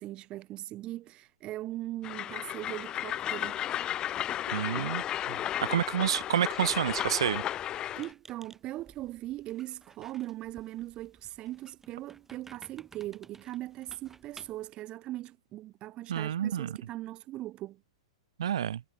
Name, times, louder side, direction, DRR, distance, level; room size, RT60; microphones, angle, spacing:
voice 1, 0.0-3.6 8.0-17.8, right 15 dB, 35° right, 2.3 m, -40 dB
Train, 2.0-8.1, left 11 dB, 30° left, 0.6 m, -34 dB
voice 2, 4.5-5.4 5.7-7.4 16.1-16.8 18.4-18.8, right 10 dB, 70° right, 0.4 m, -29 dB
Squeak, 6.6-14.7, right 4 dB, 10° right, 5.2 m, -57 dB
hypercardioid pair, 110°, 3 cm